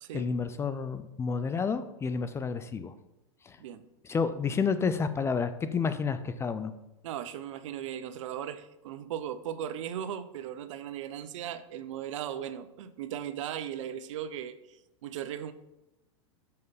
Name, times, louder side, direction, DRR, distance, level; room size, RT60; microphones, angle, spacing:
voice 1, 0.1-2.9 3.4-3.6 4.0-6.7, left 5 dB, 15° left, 11 dB, 0.4 m, -30 dB
voice 2, 7.0-15.5, right 10 dB, 70° right, 12 dB, 0.6 m, -37 dB
6.5 x 5.5 x 4.0 m, 0.94 s
hypercardioid pair, 115°, 17 cm